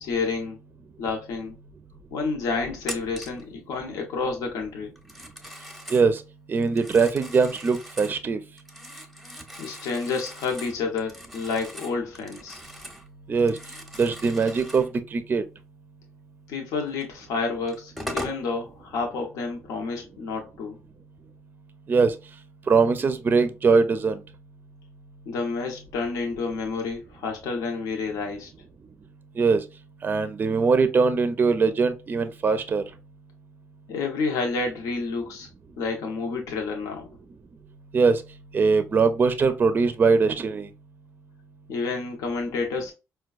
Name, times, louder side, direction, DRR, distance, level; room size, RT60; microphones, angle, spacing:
voice 1, 0.0-0.6 1.0-1.6 2.1-4.9 9.6-12.6 16.5-20.8 25.2-28.5 33.9-35.5 35.8-37.1 41.7-42.9, left 4 dB, 85° left, 0.8 m, -29 dB
Telephone, 2.8-3.4 5.0-6.1 6.6-8.2 8.6-13.1 13.3-14.9 17.0-17.1 17.7-18.4, equal, ahead, 0.7 m, -40 dB
voice 2, 5.9-6.2 6.5-8.4 13.3-13.6 14.0-15.4 21.9-22.1 22.7-24.2 29.4-29.6 30.0-32.8 37.9-38.2 38.5-40.7, right 4 dB, 35° right, 0.4 m, -21 dB
4.4 x 2.2 x 2.3 m
cardioid pair, 95°, 6 cm